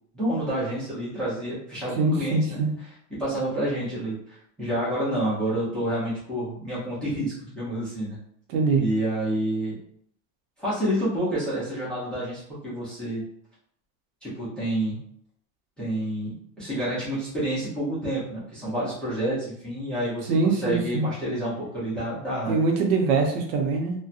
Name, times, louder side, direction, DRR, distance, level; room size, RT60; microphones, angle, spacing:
voice 1, 0.1-2.6 3.2-8.2 8.8-9.7 10.6-13.2 14.2-15.0 15.8-22.6, right 1 dB, ahead, -11 dB, 0.6 m, -29 dB
voice 2, 2.0-2.7 8.5-8.8 20.3-21.1 22.5-23.9, right 4 dB, 70° right, 2 dB, 0.8 m, -23 dB
2.7 x 2.2 x 2.4 m, 0.68 s
supercardioid pair, 170°, 46 cm